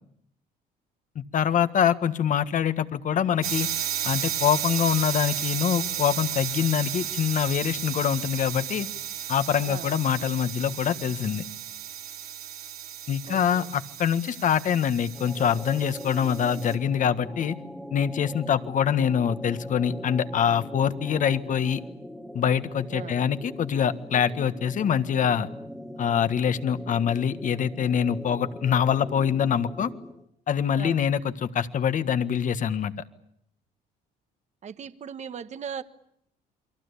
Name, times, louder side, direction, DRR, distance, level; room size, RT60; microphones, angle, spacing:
voice 1, 1.2-3.7 4.0-8.9 9.3-11.5 13.1-17.6 17.9-21.8 22.3-25.5 26.0-29.9 30.5-32.9, left 8 dB, 50° left, 1.7 m, -24 dB
sound 1, 3.4-16.7, right 10 dB, 60° right, 3.6 m, -33 dB
voice 2, 9.6-9.9 13.3-13.7 22.9-23.2 30.8-31.0 34.6-35.8, right 7 dB, 45° right, 1.4 m, -38 dB
sound 2, 15.1-30.3, equal, ahead, 2.2 m, -41 dB
29.0 x 23.5 x 8.4 m
cardioid pair, 110°, 17 cm